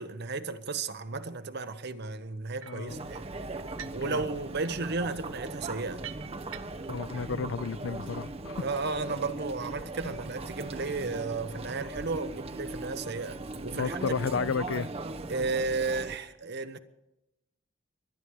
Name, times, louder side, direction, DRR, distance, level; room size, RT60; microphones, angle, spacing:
voice 1, 0.0-3.3 3.9-6.0 7.2-7.3 8.6-13.4 13.6-14.0 15.3-16.8, right 3 dB, 55° right, 1.0 m, -33 dB
voice 2, 2.6-3.0 4.0-4.2 6.9-8.7 10.0-10.1 13.7-14.9, left 5 dB, 70° left, 0.4 m, -32 dB
sound 1, 2.6-2.9 3.6-4.1 4.4-7.0, right 9 dB, 85° right, 0.8 m, -47 dB
Chatter, 2.9-16.2, right 2 dB, 30° right, 0.8 m, -39 dB
24.5 x 10.0 x 4.7 m
head